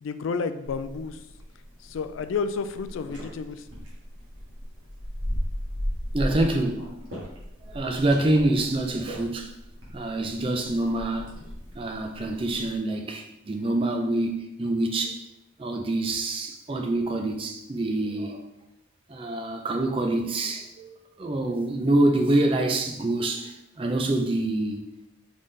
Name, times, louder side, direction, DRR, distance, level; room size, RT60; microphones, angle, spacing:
voice 1, 0.0-1.2 1.8-3.6, left 5 dB, 85° left, 0.3 m, -31 dB
sound 1, 0.6-12.8, equal, 75° right, 1.5 m, -36 dB
voice 2, 6.1-6.9 7.7-9.5 9.9-11.3 11.8-15.2 15.6-18.4 19.1-24.9, right 2 dB, 25° right, 0.4 m, -26 dB
4.0 x 3.7 x 3.2 m
head